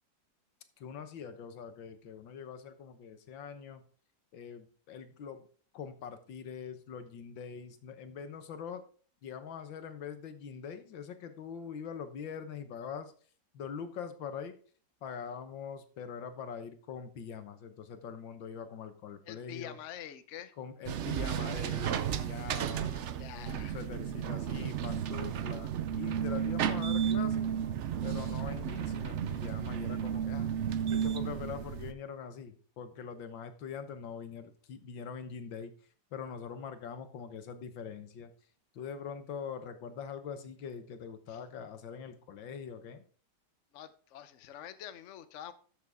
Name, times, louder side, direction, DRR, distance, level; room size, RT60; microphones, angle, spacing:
voice 1, 0.8-3.8 4.3-5.5 5.7-8.8 9.2-13.1 13.5-14.6 15.0-19.8 20.6-23.1 23.3-27.5 28.0-30.5 30.9-35.7 36.1-38.3 38.7-43.0, left 7 dB, 85° left, 1.8 m, -43 dB
voice 2, 19.2-20.5 23.2-23.8 41.3-41.4 43.7-45.5, left 10 dB, 55° left, 0.9 m, -46 dB
sound 1, 20.9-31.9, right 8 dB, 70° right, 0.6 m, -33 dB
13.0 x 6.7 x 3.5 m
omnidirectional pair, 2.0 m